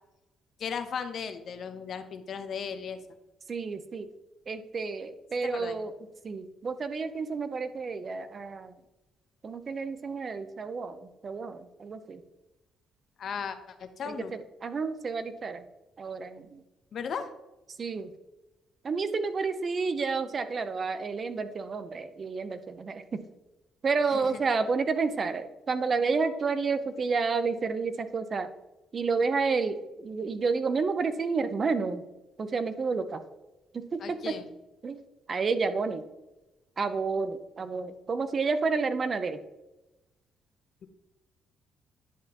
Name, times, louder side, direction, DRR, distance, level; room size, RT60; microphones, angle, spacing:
voice 1, 0.6-3.0 5.4-5.8 13.2-14.3 16.9-17.3 24.1-24.4 34.0-34.5 40.8-40.9, left 6 dB, 60° left, 9 dB, 0.8 m, -36 dB
voice 2, 3.5-4.0 4.5-5.9 6.2-8.7 9.4-11.0 11.2-12.2 14.6-15.6 16.0-16.6 17.8-18.1 18.8-23.0 23.8-28.5 28.9-32.0 32.4-33.2 33.9-34.0 34.8-35.0 35.3-36.0 36.8-39.4, right 4 dB, 45° right, 11 dB, 0.6 m, -30 dB
10.0 x 5.7 x 2.9 m, 1.0 s
cardioid pair, 90°, 0 cm